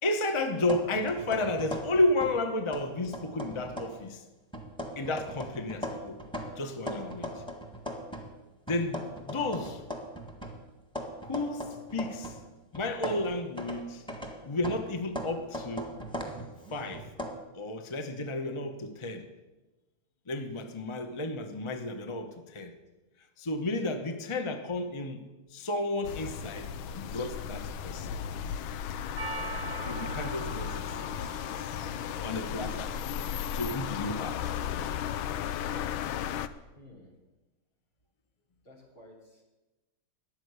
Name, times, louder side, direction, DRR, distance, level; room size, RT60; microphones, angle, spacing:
voice 1, 0.0-4.2 5.0-6.2 6.6-7.4 8.7-9.8 11.2-12.4 12.7-14.1 14.4-16.0 16.7-17.1 17.5-19.3 20.3-22.8 23.4-25.2 25.5-26.7 26.9-28.1 29.8-30.8 32.2-33.0 33.5-34.4, left 2 dB, 30° left, 7 dB, 0.5 m, -32 dB
sound 1, 0.6-2.4 2.7-4.1 4.5-8.3 8.7-12.5 12.7-17.3, equal, 5° left, 1.4 m, -39 dB
sound 2, 26.0-36.5, left 9 dB, 85° left, 1.5 m, -35 dB
Percussion, 29.2-34.1, right 4 dB, 15° right, 0.7 m, -44 dB
voice 2, 36.7-37.1 38.6-39.4, left 1 dB, 60° left, -1 dB, 4.0 m, -53 dB
13.5 x 10.0 x 8.1 m, 1.1 s
omnidirectional pair, 2.2 m